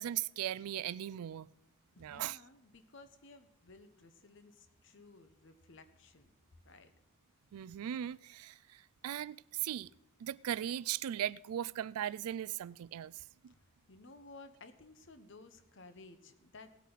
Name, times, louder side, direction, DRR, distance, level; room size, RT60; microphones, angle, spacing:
voice 1, 0.0-1.5 2.0-2.4 7.5-9.9 10.2-13.5, right 11 dB, 80° right, 0.3 m, -38 dB
voice 2, 1.9-6.3 6.6-6.9 13.5-13.6 13.9-16.8, left 3 dB, 55° left, 1.0 m, -56 dB
18.0 x 8.3 x 4.0 m
head